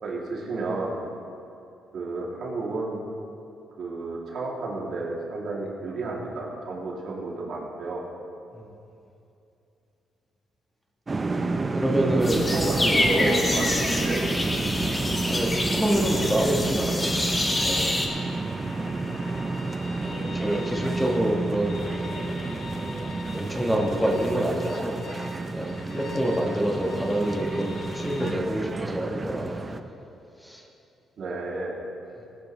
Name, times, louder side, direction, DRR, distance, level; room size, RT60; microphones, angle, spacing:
voice 1, 0.0-1.0 1.9-3.1 3.8-8.0 12.0-14.2 31.2-31.7, right 2 dB, 60° right, -3 dB, 2.9 m, -31 dB
sound 1, 11.1-29.8, right 3 dB, 25° right, 0.7 m, -30 dB
voice 2, 11.5-12.4 12.8-13.5 15.3-17.2 17.6-17.9 20.0-21.8 23.3-25.0 25.5-29.7 30.4-30.7, equal, 5° left, -1 dB, 1.5 m, -27 dB
sound 2, 12.2-18.1, left 1 dB, 20° left, 1.5 m, -27 dB
sound 3, 14.7-28.3, left 2 dB, 60° left, 2.6 m, -42 dB
18.5 x 11.0 x 3.3 m, 2.7 s
cardioid pair, 90°, 0 cm